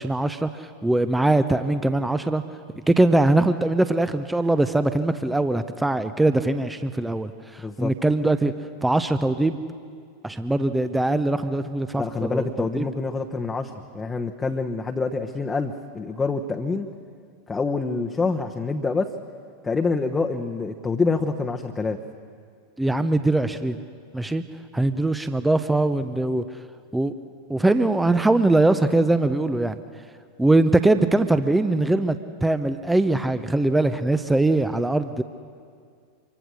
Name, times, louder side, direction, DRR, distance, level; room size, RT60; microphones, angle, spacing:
voice 1, 0.0-2.4 2.9-8.5 8.8-9.6 10.2-12.8 22.8-23.8 24.1-24.4 24.7-26.4 26.9-27.1 27.5-29.8 30.4-32.2 32.4-35.2, right 2 dB, 5° right, 11 dB, 0.9 m, -21 dB
voice 2, 7.6-7.9 12.0-16.9 17.5-19.1 19.6-22.0, left 4 dB, 15° left, 3 dB, 1.2 m, -26 dB
26.0 x 23.5 x 6.5 m, 2.1 s
figure-of-eight pair, 85°, 0 cm